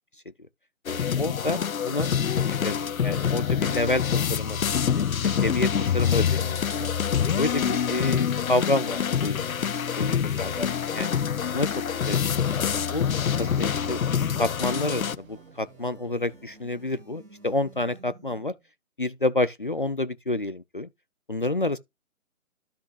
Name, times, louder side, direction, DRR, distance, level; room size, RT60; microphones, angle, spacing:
sound 1, 0.9-15.2, left 8 dB, 85° left, 0.6 m, -26 dB
voice 1, 0.9-2.1 2.6-2.8 3.0-4.6 5.0-6.9 7.4-9.5 10.0-11.1 11.5-11.7 12.1-12.2 12.5-13.1 13.4-14.0 14.3-18.5 19.0-20.9 21.3-21.8, left 2 dB, 40° left, 0.4 m, -29 dB
sound 2, 3.5-18.7, right 5 dB, 80° right, 1.5 m, -51 dB
sound 3, 15.3-18.0, left 2 dB, 5° left, 2.0 m, -62 dB
13.0 x 5.6 x 2.3 m
figure-of-eight pair, 155°, 41 cm